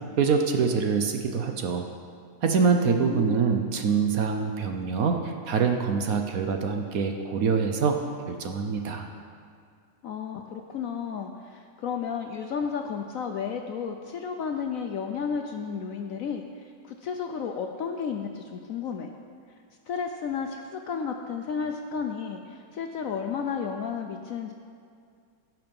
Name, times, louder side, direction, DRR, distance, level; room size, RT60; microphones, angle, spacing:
voice 1, 0.2-1.8 2.4-8.0 8.3-9.1, right 5 dB, 60° right, 4 dB, 1.1 m, -25 dB
voice 2, 2.8-3.5 10.0-19.1 19.9-24.5, left 6 dB, 65° left, 4 dB, 0.9 m, -32 dB
16.5 x 5.9 x 5.3 m, 2.2 s
omnidirectional pair, 1.9 m